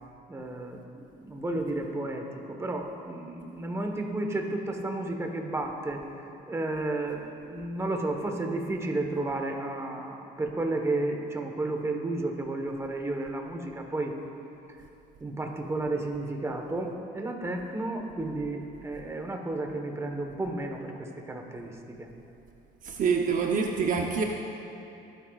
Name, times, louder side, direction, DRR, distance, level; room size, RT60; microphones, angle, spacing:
voice 1, 0.3-14.2 15.2-22.1, right 2 dB, 15° right, 3 dB, 1.2 m, -32 dB
voice 2, 22.8-24.2, right 5 dB, 50° right, 2 dB, 0.8 m, -26 dB
19.5 x 9.0 x 2.4 m, 2.7 s
cardioid pair, 110°, 17 cm